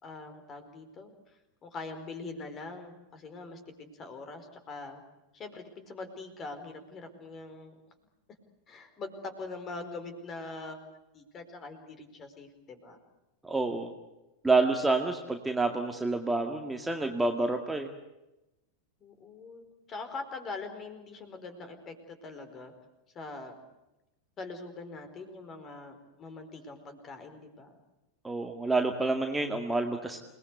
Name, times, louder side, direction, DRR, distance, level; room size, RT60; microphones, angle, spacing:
voice 1, 0.0-5.0 5.3-7.8 8.7-13.0 19.0-22.7 23.1-23.5 24.4-27.7, left 3 dB, 25° left, 8 dB, 4.6 m, -43 dB
voice 2, 13.4-13.9 14.4-17.9 28.2-30.2, right 3 dB, 5° right, 3 dB, 2.1 m, -28 dB
28.5 x 20.0 x 8.2 m, 0.97 s
figure-of-eight pair, 90°, 0 cm